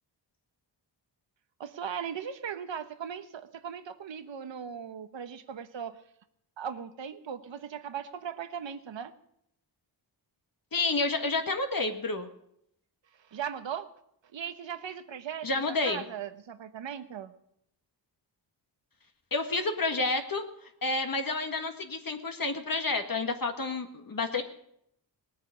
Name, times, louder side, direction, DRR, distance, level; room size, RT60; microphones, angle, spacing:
voice 1, 1.6-6.0 6.6-9.1 13.3-13.9 14.3-17.3, right 8 dB, 85° right, 11 dB, 1.1 m, -38 dB
voice 2, 10.7-12.3 15.4-16.0 19.3-24.4, left 3 dB, 50° left, 5 dB, 1.8 m, -30 dB
19.0 x 9.1 x 8.1 m, 0.75 s
cardioid pair, 75°, 44 cm